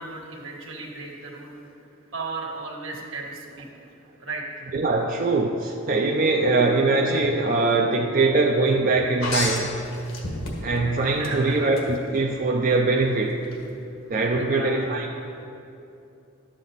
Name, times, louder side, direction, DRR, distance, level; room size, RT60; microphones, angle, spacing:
voice 1, 0.0-1.5 2.1-3.7 4.2-4.4 11.2-11.6 14.4-14.9, right 3 dB, 75° right, -1 dB, 1.6 m, -35 dB
voice 2, 4.7-9.7 10.6-13.4 14.1-15.1, right 3 dB, 45° right, 1 dB, 0.5 m, -22 dB
sound 1, 9.2-10.8 11.2-11.9 13.4-13.6, left 3 dB, 80° left, 1.6 m, -30 dB
11.5 x 7.6 x 4.0 m, 2.8 s
head